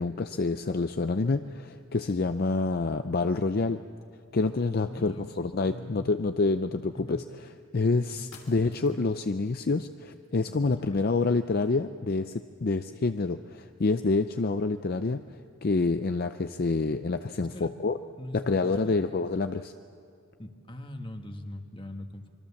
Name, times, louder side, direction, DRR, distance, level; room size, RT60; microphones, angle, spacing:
voice 1, 0.0-3.8 4.3-7.2 7.7-15.2 15.6-18.0 18.3-19.7, left 3 dB, 45° left, 9 dB, 0.5 m, -27 dB
voice 2, 4.9-5.3 5.6-6.2 6.9-7.2 8.2-8.4 10.5-11.2 17.4-17.7 18.2-19.0 20.4-22.3, left 1 dB, 25° left, 5 dB, 1.4 m, -42 dB
sound 1, 8.3-9.2, left 5 dB, 90° left, 3.0 m, -52 dB
25.5 x 23.5 x 7.1 m, 2.5 s
head